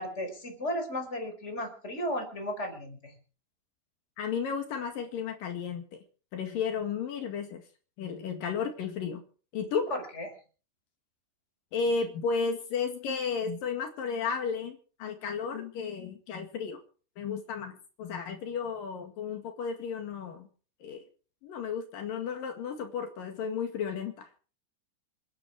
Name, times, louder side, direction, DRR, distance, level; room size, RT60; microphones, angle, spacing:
voice 1, 0.0-3.1 9.7-10.3, equal, 20° left, 5 dB, 5.0 m, -35 dB
voice 2, 4.2-5.8 6.3-7.6 8.0-9.2 9.5-9.9 11.7-16.8 17.2-20.5 20.8-21.0 21.4-24.4, left 5 dB, 75° left, 5 dB, 3.7 m, -33 dB
28.0 x 10.5 x 4.8 m, 0.40 s
omnidirectional pair, 4.0 m